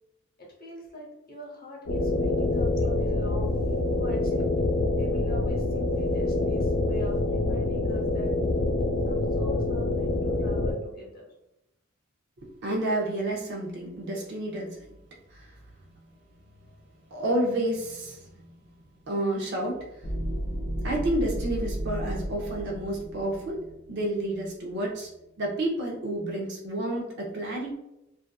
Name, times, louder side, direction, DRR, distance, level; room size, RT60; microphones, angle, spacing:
voice 1, 0.4-3.6 3.9-4.4 5.0-8.3 9.0-11.3, left 1 dB, 45° left, -2 dB, 0.8 m, -42 dB
sound 1, 1.9-10.7, left 2 dB, 85° left, 0.6 m, -26 dB
voice 2, 12.4-14.9 15.3-15.5 17.1-18.4 19.1-19.9 20.8-23.6 23.9-25.1 25.4-27.7, right 1 dB, 55° right, -2 dB, 0.6 m, -30 dB
sound 2, 20.0-24.6, equal, 20° left, 0.4 m, -33 dB
2.6 x 2.3 x 2.3 m, 0.86 s
head